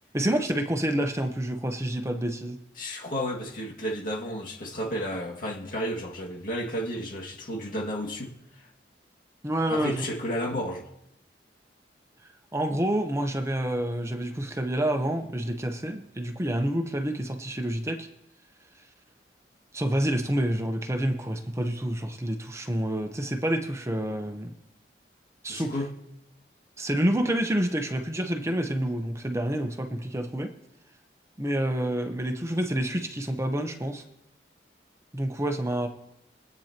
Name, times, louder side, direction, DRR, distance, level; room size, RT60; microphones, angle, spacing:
voice 1, 0.1-2.6 9.4-10.1 12.5-18.1 19.7-24.5 25.4-25.7 26.8-30.5 31.4-34.0 35.1-35.9, right 1 dB, 15° right, 0.9 m, -28 dB
voice 2, 2.8-8.7 9.7-10.9 25.5-25.9, equal, 50° left, 2.1 m, -32 dB
23.0 x 8.9 x 3.0 m
head